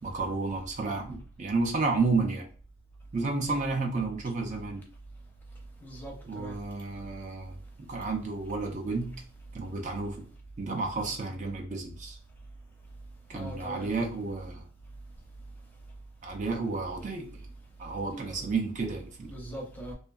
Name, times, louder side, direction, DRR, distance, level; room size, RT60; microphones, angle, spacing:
voice 1, 0.0-2.5 3.1-4.8 6.3-7.6 7.9-9.2 9.5-10.3 10.6-12.2 13.3-14.6 16.2-17.5 17.8-19.3, right 3 dB, 35° right, 0.4 m, -31 dB
voice 2, 5.8-6.6 13.3-13.9 18.1-18.4 19.2-19.9, right 1 dB, 10° left, 0.6 m, -41 dB
2.6 x 2.4 x 2.3 m
head